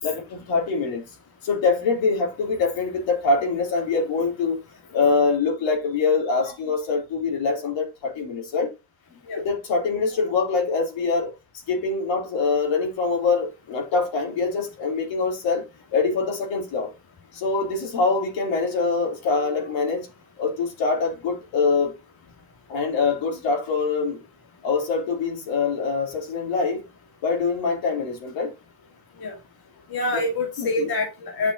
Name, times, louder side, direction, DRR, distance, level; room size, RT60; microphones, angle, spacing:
voice 1, 0.0-1.0 1.4-4.6 4.9-8.7 9.4-11.3 11.7-16.9 17.3-20.1 20.4-21.9 22.7-24.2 24.6-26.8 27.2-28.5 30.6-30.9, left 4 dB, 70° left, 3.7 m, -24 dB
voice 2, 29.9-31.5, left 2 dB, 50° left, 2.2 m, -26 dB
9.0 x 6.4 x 2.9 m
supercardioid pair, 65°, 47 cm